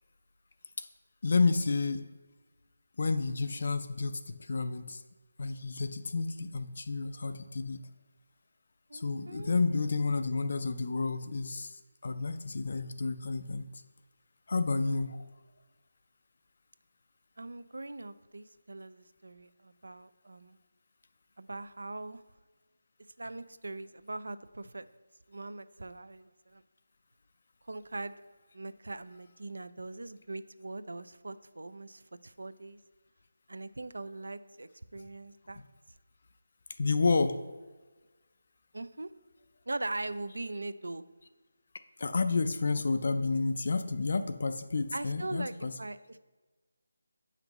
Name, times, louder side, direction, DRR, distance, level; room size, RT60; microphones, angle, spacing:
voice 1, 1.2-2.0 3.0-5.0 5.4-7.8 8.9-13.8 14.5-15.2 36.8-37.4 42.0-45.7, left 4 dB, 45° left, 9 dB, 0.3 m, -30 dB
voice 2, 8.9-9.6 17.4-20.6 21.4-22.2 23.2-24.9 25.3-26.6 27.6-28.2 28.5-32.8 33.5-35.6 38.7-39.1 39.7-41.0 44.9-46.2, right 2 dB, 85° right, 14 dB, 0.4 m, -41 dB
7.9 x 5.8 x 3.0 m, 1.3 s
figure-of-eight pair, 175°, 0 cm